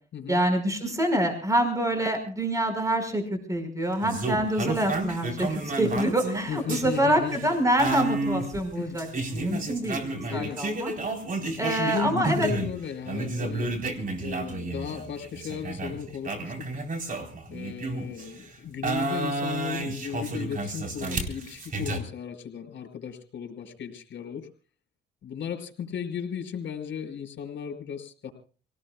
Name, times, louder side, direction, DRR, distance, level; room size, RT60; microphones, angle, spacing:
voice 1, 0.3-9.1 9.3-10.9 11.6-12.5, right 1 dB, 15° right, 5 dB, 5.2 m, -26 dB
sound 1, 4.0-12.8 13.1-18.3 18.8-22.0, right 2 dB, 45° right, 4.2 m, -31 dB
voice 2, 6.5-7.5 8.5-9.0 10.3-10.6 11.6-13.7 14.2-16.7 17.5-24.5 25.2-28.3, left 8 dB, 65° left, 4 dB, 4.9 m, -35 dB
28.5 x 18.5 x 2.3 m, 0.41 s
cardioid pair, 90°, 20 cm